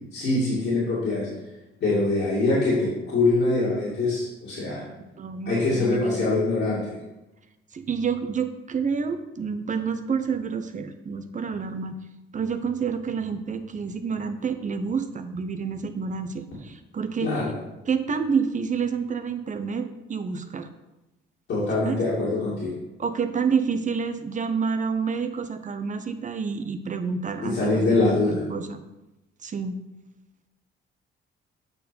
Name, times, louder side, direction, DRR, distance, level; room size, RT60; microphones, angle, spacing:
voice 1, 0.1-1.3 1.8-4.8 5.5-6.9 17.2-17.5 21.5-22.7 27.4-28.4, left 2 dB, 65° left, -9 dB, 2.7 m, -23 dB
voice 2, 5.2-6.3 7.7-11.9 12.3-17.3 17.9-20.7 21.8-22.0 23.0-28.8 29.4-29.8, right 5 dB, 40° right, 9 dB, 0.8 m, -28 dB
8.3 x 4.7 x 5.4 m, 0.99 s
cardioid pair, 90°, 20 cm